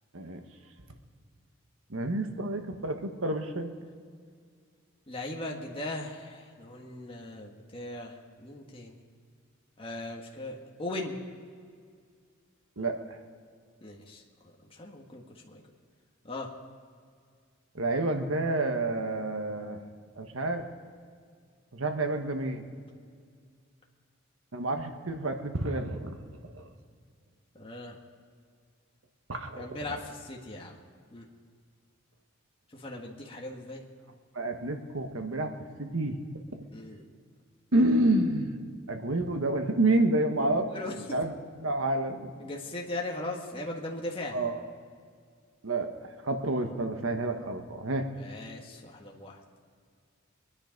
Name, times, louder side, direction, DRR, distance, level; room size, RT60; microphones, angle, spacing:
voice 1, 1.9-3.7 12.8-13.0 17.7-19.8 20.2-20.6 21.7-22.6 24.5-26.2 26.5-26.6 29.3-29.7 34.3-35.5 35.8-36.2 37.7-38.5 38.9-41.3 41.6-42.5 44.3-44.5 45.6-45.9 46.2-48.1, right 2 dB, 75° right, 6 dB, 1.3 m, -29 dB
voice 2, 5.1-9.0 9.8-11.2 13.8-15.6 16.2-16.5 27.5-28.0 29.6-30.8 31.1-31.2 32.7-33.8 36.7-37.0 40.7-40.9 42.4-44.4 48.1-49.4, left 2 dB, 25° left, -1 dB, 1.6 m, -39 dB
24.0 x 10.0 x 5.2 m, 2.1 s
head